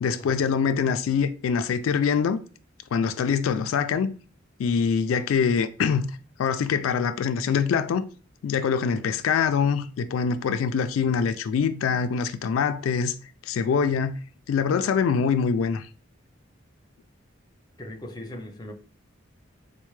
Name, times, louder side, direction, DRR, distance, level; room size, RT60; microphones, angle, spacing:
voice 1, 0.0-2.4 2.9-4.1 4.6-6.1 6.4-8.1 8.4-13.1 13.5-14.2 14.5-15.9, left 6 dB, 85° left, 0.3 m, -24 dB
voice 2, 17.8-18.7, left 1 dB, 20° left, 0.5 m, -39 dB
4.3 x 2.1 x 3.1 m
head